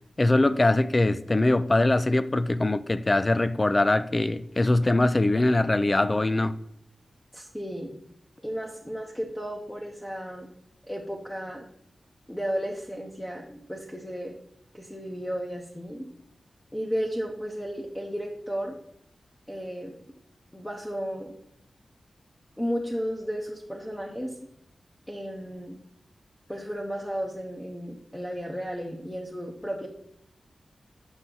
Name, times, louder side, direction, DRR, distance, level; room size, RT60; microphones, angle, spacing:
voice 1, 0.2-6.6, left 2 dB, 25° left, 0.3 m, -22 dB
voice 2, 7.3-7.9 8.4-10.5 10.9-11.6 12.3-14.4 14.7-16.1 16.7-18.8 19.5-20.0 20.5-21.3 22.6-24.4 25.1-25.8 26.5-29.9, equal, 10° left, 0.7 m, -33 dB
8.0 x 5.6 x 3.8 m
wide cardioid pair, 135°, 0 cm